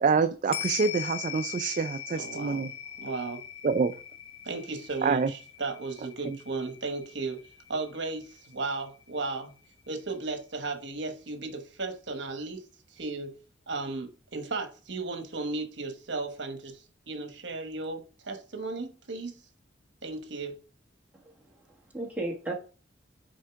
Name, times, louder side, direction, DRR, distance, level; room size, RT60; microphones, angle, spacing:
voice 1, 0.0-2.7 3.6-3.9 5.0-5.3, right 5 dB, 40° right, 0.3 m, -26 dB
sound 1, 0.5-9.1 9.4-9.5, left 9 dB, 30° left, 0.4 m, -41 dB
voice 2, 2.1-3.4 4.4-9.6 9.9-13.4 13.7-19.5 20.0-20.6, right 3 dB, 70° right, 1.1 m, -35 dB
voice 3, 21.1-22.5, right 2 dB, 10° right, 1.4 m, -36 dB
6.4 x 4.4 x 3.5 m
head